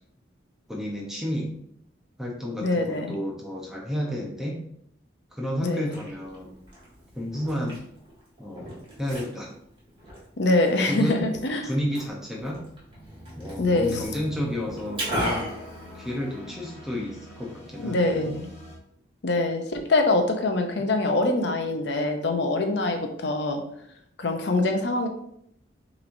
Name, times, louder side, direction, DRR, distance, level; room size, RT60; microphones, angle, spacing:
voice 1, 0.7-1.5 2.2-4.6 5.3-6.6 7.2-7.8 8.4-8.7 9.0-9.5 10.9-11.3 11.6-12.6 13.4-15.6 16.0-18.4, equal, ahead, -2 dB, 0.7 m, -31 dB
voice 2, 2.6-3.1 5.6-6.0 10.4-11.6 13.6-14.1 17.8-18.5 19.2-23.6 24.2-25.1, left 2 dB, 60° left, 4 dB, 0.6 m, -24 dB
Liquid, 5.6-16.6, equal, 30° right, 1.7 m, -38 dB
sound 1, 12.8-18.8, left 1 dB, 35° left, 1.0 m, -43 dB
5.9 x 3.1 x 2.6 m, 0.70 s
head